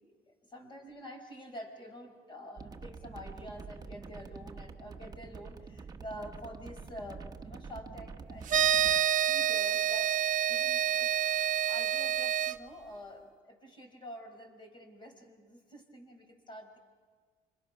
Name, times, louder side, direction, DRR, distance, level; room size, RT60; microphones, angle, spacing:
voice 1, 0.0-10.2 10.5-11.4 11.7-16.8, equal, 30° left, 5 dB, 5.5 m, -48 dB
sound 1, 2.6-9.0, right 5 dB, 25° right, 1.2 m, -46 dB
sound 2, 8.5-12.6, right 11 dB, 50° right, 1.0 m, -28 dB
29.0 x 26.5 x 6.0 m, 1.5 s
cardioid pair, 110°, 17 cm